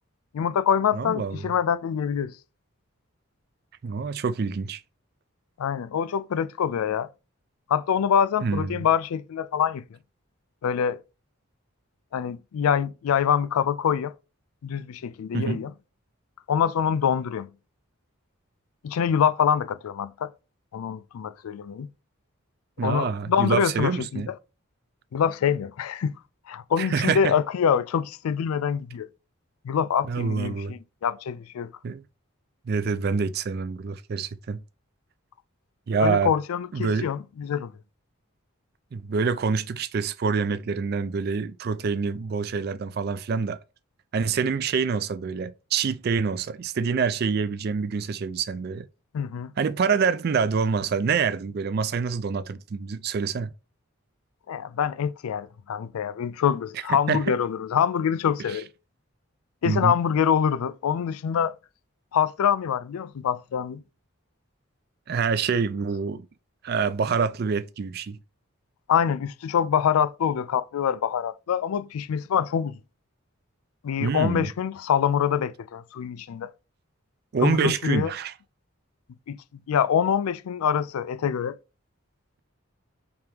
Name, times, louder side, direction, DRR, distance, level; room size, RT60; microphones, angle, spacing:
voice 1, 0.3-2.4 5.6-7.1 7.7-9.8 10.6-11.0 12.1-14.1 14.6-15.7 16.5-17.5 18.8-20.3 20.7-21.9 22.8-24.3 25.1-26.1 26.5-29.1 29.6-31.7 36.0-37.7 49.1-49.5 54.5-58.7 59.6-61.5 62.1-63.8 68.9-72.8 73.8-76.5 77.4-78.1 79.3-79.4 79.7-81.6, left 8 dB, 90° left, 0.3 m, -25 dB
voice 2, 0.9-1.5 3.8-4.8 8.4-8.9 15.3-15.6 22.8-24.3 26.8-27.4 30.0-30.8 31.8-32.0 32.7-34.6 35.9-36.3 36.7-37.1 38.9-43.6 44.1-48.9 49.6-53.5 56.9-57.2 58.5-58.6 59.6-60.0 65.1-66.3 66.6-68.2 74.0-74.5 77.3-78.3, right 5 dB, 45° right, 0.3 m, -26 dB
3.5 x 2.9 x 4.7 m
head